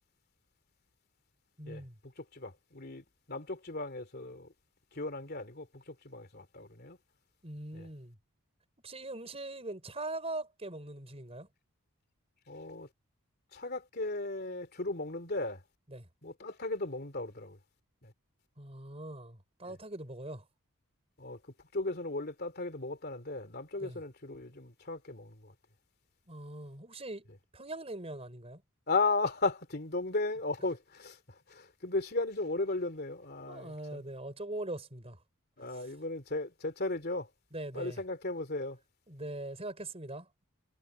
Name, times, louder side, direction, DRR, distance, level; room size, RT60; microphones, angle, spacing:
voice 1, 1.6-1.9 7.4-8.1 8.8-11.5 15.9-16.1 18.6-20.4 23.8-24.0 26.3-27.3 27.5-28.6 33.5-35.2 37.5-38.0 39.1-40.3, right 2 dB, 30° right, 4.7 m, -41 dB
voice 2, 2.2-4.5 4.9-7.0 7.7-7.9 12.5-12.9 13.5-15.6 16.2-17.6 18.0-18.1 19.6-19.8 21.2-21.4 21.7-25.5 28.9-34.0 35.6-37.3 37.7-38.8, left 3 dB, 45° left, 3.0 m, -36 dB
head